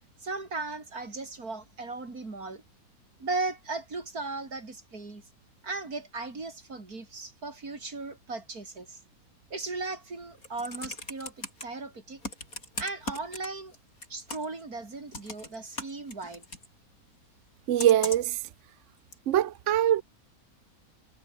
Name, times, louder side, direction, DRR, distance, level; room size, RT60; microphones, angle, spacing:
voice 1, 0.2-2.6 3.2-5.2 5.6-9.0 9.5-12.2 12.8-13.7 14.1-16.5, right 3 dB, 85° right, 4.6 m, -37 dB
Computer keyboard, 10.2-11.6 12.2-13.8 14.0-14.6 15.1-16.7 17.8-18.4 19.1-19.2, left 2 dB, 70° left, 8.4 m, -38 dB
voice 2, 17.7-18.4 19.3-20.0, right 11 dB, 60° right, 0.9 m, -23 dB
omnidirectional pair, 1.5 m